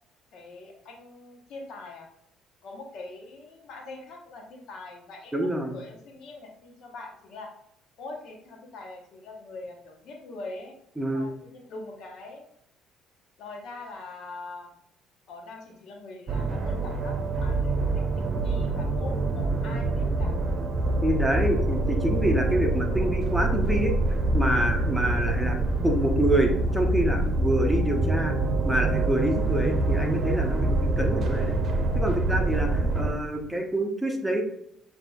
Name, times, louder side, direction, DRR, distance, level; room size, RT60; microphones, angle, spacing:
voice 1, 0.3-2.1 2.6-7.5 8.0-10.7 11.1-12.4 13.4-14.7 15.3-20.3, left 2 dB, 60° left, 2 dB, 0.9 m, -43 dB
voice 2, 5.3-5.8 11.0-11.3 21.0-23.9 24.3-25.6 25.8-28.3 28.6-31.6 31.9-34.4, right 1 dB, 5° right, 2 dB, 1.0 m, -26 dB
sound 1, 16.3-33.1, right 2 dB, 45° right, 0.8 m, -25 dB
7.5 x 2.8 x 2.4 m, 0.75 s
hypercardioid pair, 55°, 0 cm